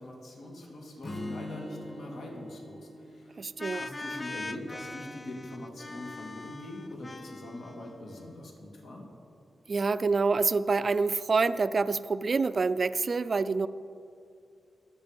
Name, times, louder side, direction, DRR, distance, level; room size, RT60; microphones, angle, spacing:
voice 1, 0.0-3.4 3.7-9.1, left 1 dB, 75° left, -1 dB, 2.6 m, -43 dB
Strum, 1.0-5.2, left 1 dB, 45° left, 2.4 m, -43 dB
voice 2, 3.4-3.8 9.7-13.7, right 4 dB, 40° right, 14 dB, 0.4 m, -27 dB
sound 1, 3.6-8.3, left 2 dB, 25° left, 0.5 m, -42 dB
24.0 x 8.2 x 5.2 m, 2.5 s
wide cardioid pair, 125°, 0 cm